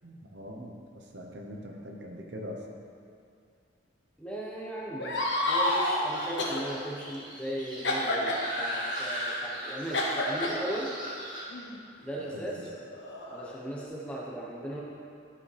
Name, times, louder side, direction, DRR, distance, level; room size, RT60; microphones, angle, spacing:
voice 1, 0.0-2.6 12.3-12.5, equal, 60° right, 1 dB, 0.8 m, -42 dB
voice 2, 4.2-5.1 5.5-10.9 12.0-12.5 13.3-14.8, right 1 dB, 5° left, -5 dB, 1.0 m, -37 dB
sound 1, 5.0-6.0 6.4-6.6 7.8-8.4 9.9-10.5 11.5-11.7 12.6-13.8, left 1 dB, 65° left, 1.0 m, -29 dB
sound 2, 5.1-11.4, equal, 20° right, 1.4 m, -38 dB
11.5 x 5.0 x 3.3 m, 2.4 s
head